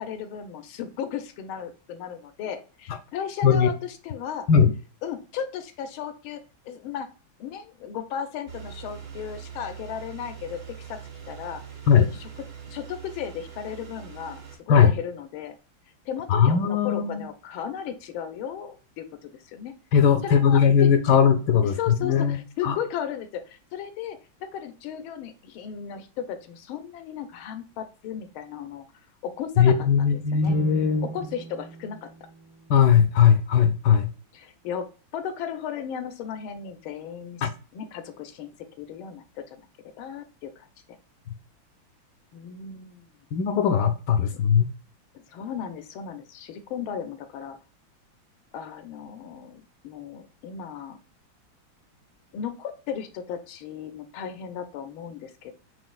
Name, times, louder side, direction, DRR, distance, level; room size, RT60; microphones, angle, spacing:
voice 1, 0.0-4.5 5.0-7.1 7.4-11.0 11.3-11.6 12.0-12.3 12.7-15.5 16.1-19.7 20.2-21.2 21.6-28.9 29.2-30.5 31.0-32.1 34.3-38.5 38.8-41.0 42.3-43.1 45.3-47.6 48.5-51.0 52.3-55.5, left 8 dB, 90° left, 1.5 m, -35 dB
sound 1, 8.5-14.6, right 7 dB, 50° right, 1.6 m, -42 dB
voice 2, 16.3-17.2 19.9-22.4 22.6-22.8 29.6-31.1 32.7-34.1 37.4-37.5 43.3-44.7, left 7 dB, 75° left, 1.0 m, -19 dB
sound 2, 30.4-33.7, right 4 dB, 75° right, 1.4 m, -40 dB
5.2 x 3.1 x 2.3 m
omnidirectional pair, 2.2 m